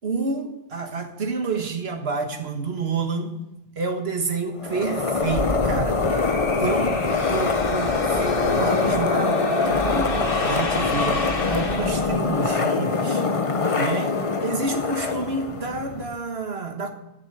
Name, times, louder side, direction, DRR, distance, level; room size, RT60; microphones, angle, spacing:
voice 1, 0.0-3.4 3.8-6.0 6.6-7.0 7.3-11.2 11.5-13.2 13.8-16.9, right 4 dB, 80° right, 5 dB, 1.7 m, -29 dB
sound 1, 4.6-16.1, left 4 dB, 35° left, 0.9 m, -24 dB
sound 2, 5.2-12.4, left 2 dB, 60° left, 1.5 m, -28 dB
13.5 x 7.1 x 8.5 m, 0.92 s
omnidirectional pair, 1.0 m